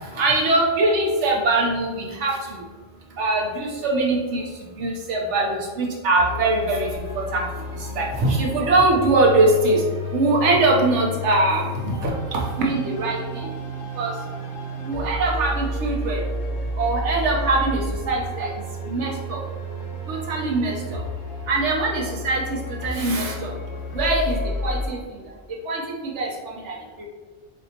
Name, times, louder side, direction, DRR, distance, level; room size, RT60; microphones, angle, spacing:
voice 1, 0.2-2.4 3.2-4.4 4.8-6.9 7.3-7.4 7.9-9.8 10.1-11.6 12.0-13.5 14.0-14.1 14.8-16.2 16.8-18.5 18.9-19.4 20.1-21.0 21.5-23.5 23.9-25.0 25.7-26.3 26.6-26.7 27.0-27.1, right 2 dB, 80° right, -1 dB, 1.1 m, -22 dB
sound 1, 6.2-24.9, left 1 dB, 60° left, 0.8 m, -31 dB
4.2 x 2.7 x 2.8 m, 1.3 s
omnidirectional pair, 1.2 m